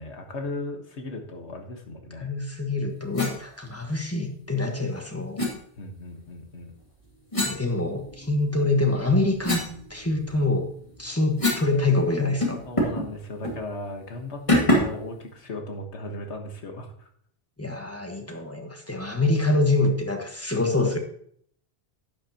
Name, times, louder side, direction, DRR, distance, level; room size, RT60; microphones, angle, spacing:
voice 1, 0.0-2.3 5.8-6.7 12.7-17.1, left 2 dB, 85° left, 4 dB, 1.7 m, -37 dB
voice 2, 2.2-5.4 7.4-9.6 9.9-10.7 11.0-12.6 17.6-21.0, left 2 dB, 15° left, 3 dB, 1.4 m, -25 dB
sound 1, 3.1-3.4 5.4-5.5 7.3-8.4 8.8-11.7 12.0-12.1 12.4-13.1 13.4-13.6 14.5-15.0, left 1 dB, 30° left, 2.3 m, -26 dB
11.5 x 8.5 x 2.9 m, 0.62 s
omnidirectional pair, 1.1 m